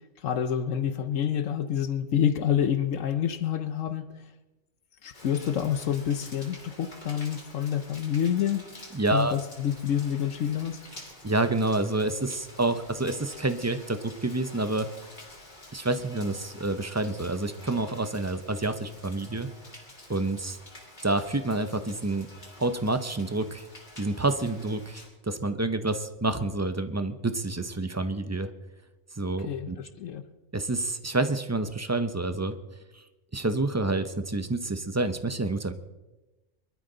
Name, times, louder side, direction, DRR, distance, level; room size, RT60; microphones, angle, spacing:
voice 1, 0.2-4.1 5.0-8.6 9.1-10.8 29.4-30.2, left 9 dB, 70° left, 10 dB, 1.2 m, -28 dB
Rain, 5.1-25.1, left 1 dB, 35° left, 3.0 m, -49 dB
voice 2, 8.9-9.3 11.2-14.9 15.7-19.5 20.1-20.6 21.0-22.3 22.6-23.7 24.0-28.5 29.2-29.8 30.5-32.6 32.9-33.0 33.3-35.7, right 2 dB, 20° right, 10 dB, 0.5 m, -28 dB
23.0 x 13.0 x 3.9 m, 1.1 s
omnidirectional pair, 1.4 m